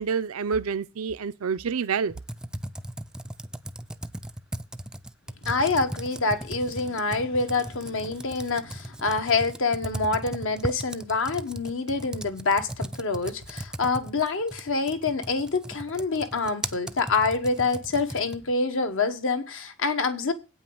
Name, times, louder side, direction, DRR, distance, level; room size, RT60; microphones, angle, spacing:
voice 1, 0.0-2.1, right 6 dB, 75° right, 0.5 m, -28 dB
Computer keyboard, 2.1-18.5, right 1 dB, 5° right, 0.4 m, -37 dB
voice 2, 5.4-20.3, left 3 dB, 65° left, 1.2 m, -26 dB
8.7 x 5.5 x 7.7 m
head